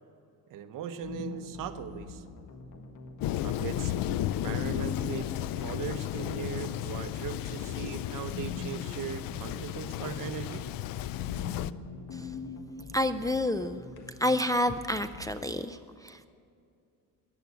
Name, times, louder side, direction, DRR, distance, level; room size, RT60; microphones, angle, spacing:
voice 1, 0.5-2.2 3.4-3.9 4.4-10.7, right 9 dB, 65° right, 9 dB, 1.0 m, -39 dB
sound 1, 1.0-15.5, left 5 dB, 60° left, 1.7 m, -43 dB
Thunder, 3.2-11.7, left 13 dB, 75° left, 0.5 m, -34 dB
voice 2, 12.9-13.8 14.2-16.3, left 1 dB, 10° left, 8 dB, 0.3 m, -29 dB
14.5 x 10.5 x 8.3 m, 2.5 s
cardioid pair, 135°, 35 cm